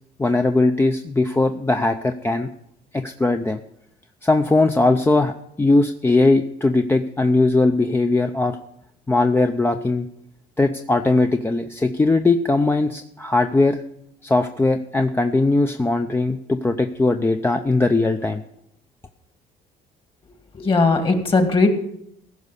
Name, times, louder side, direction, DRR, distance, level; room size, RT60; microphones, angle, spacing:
voice 1, 0.2-2.5 2.9-3.6 4.2-8.6 9.1-10.1 10.6-13.8 14.2-18.4, left 2 dB, 15° left, 6 dB, 0.6 m, -19 dB
voice 2, 20.5-21.7, left 3 dB, 30° left, 6 dB, 2.1 m, -18 dB
15.5 x 5.4 x 8.3 m, 0.74 s
cardioid pair, 110°, 17 cm